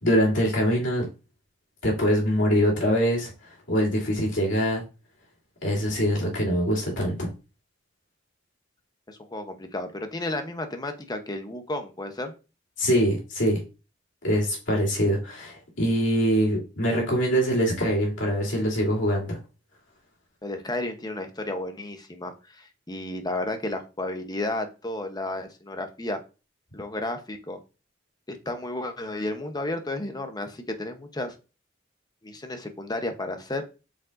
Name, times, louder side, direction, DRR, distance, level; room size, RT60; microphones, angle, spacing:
voice 1, 0.0-1.1 1.8-4.8 5.6-7.3 12.8-13.6 14.2-19.4, equal, 70° left, -3 dB, 2.9 m, -24 dB
voice 2, 9.1-12.3 20.4-26.2 26.7-27.6 28.3-31.3 32.2-33.6, left 2 dB, 20° left, 6 dB, 0.9 m, -32 dB
7.7 x 5.2 x 2.6 m, 0.31 s
head